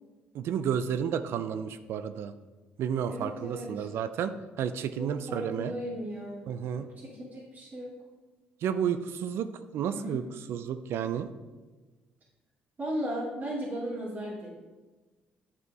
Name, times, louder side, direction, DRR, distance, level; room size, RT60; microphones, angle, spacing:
voice 1, 0.3-2.3 2.8-5.8 6.5-6.9 8.6-10.2 10.5-11.3, right 8 dB, 70° right, 11 dB, 0.5 m, -31 dB
voice 2, 3.0-3.9 4.9-6.5 6.7-7.9 10.0-10.1 12.8-14.5, right 1 dB, 40° right, -8 dB, 2.4 m, -36 dB
8.3 x 4.9 x 4.8 m, 1.2 s
supercardioid pair, 60°, 4 cm